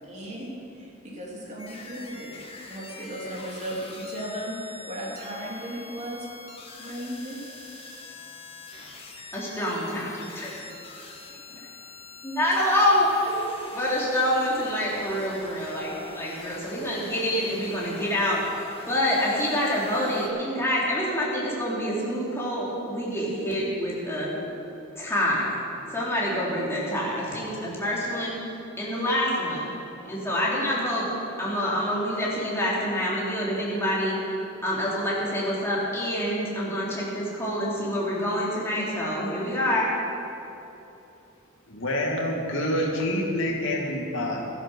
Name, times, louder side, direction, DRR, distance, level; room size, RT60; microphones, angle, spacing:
voice 1, 0.0-6.3 6.8-7.5 11.5-11.6, equal, 35° right, -4 dB, 2.9 m, -36 dB
sound 1, 1.6-20.3, left 3 dB, 30° left, 1.5 m, -44 dB
voice 2, 9.3-10.6 11.6-11.7 12.2-13.4 13.7-18.4 18.9-24.3 25.0-25.6 25.9-28.4 28.8-29.7 30.0-31.1 31.4-34.2 34.6-39.9, equal, 15° left, -6 dB, 3.3 m, -26 dB
voice 3, 41.7-44.4, left 1 dB, 65° left, -1 dB, 2.3 m, -27 dB
13.5 x 11.0 x 6.4 m, 3.0 s
head